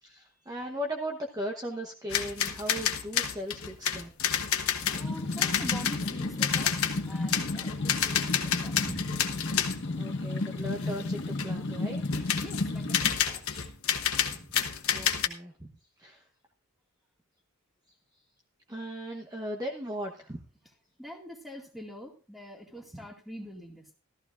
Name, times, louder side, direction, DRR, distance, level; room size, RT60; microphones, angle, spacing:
voice 1, 0.0-4.1 8.9-9.0 10.0-12.0 14.4-14.5 14.9-15.7 16.0-16.3 18.7-20.4, equal, 15° right, 1 dB, 1.1 m, -37 dB
sound 1, 2.1-9.9 10.4-11.6 12.0-15.3, left 9 dB, 70° left, 1.2 m, -30 dB
sound 2, 4.8-13.1, left 2 dB, 55° left, 1.6 m, -33 dB
voice 2, 4.9-6.7 7.0-8.8 12.4-13.7 21.0-23.9, equal, ahead, 1 dB, 2.2 m, -44 dB
14.5 x 14.0 x 2.6 m, 0.34 s
head